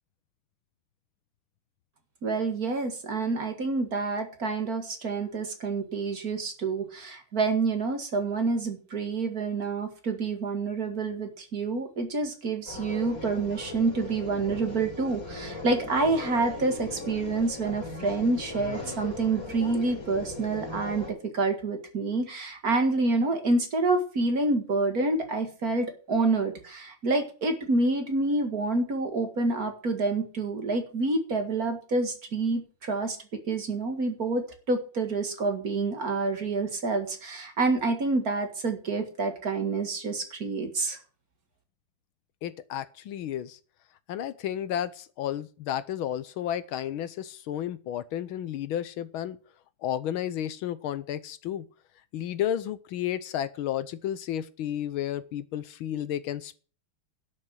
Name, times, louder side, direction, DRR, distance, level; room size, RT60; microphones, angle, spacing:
voice 1, 2.2-21.1 21.3-33.2 33.5-41.0, right 3 dB, 45° right, 2.1 m, -28 dB
sound 1, 12.7-21.1, left 3 dB, 30° left, 5.4 m, -38 dB
voice 2, 42.4-43.6 44.1-49.4 49.8-51.7 52.1-56.5, left 11 dB, 75° left, 1.5 m, -32 dB
12.0 x 6.7 x 7.7 m
omnidirectional pair, 2.4 m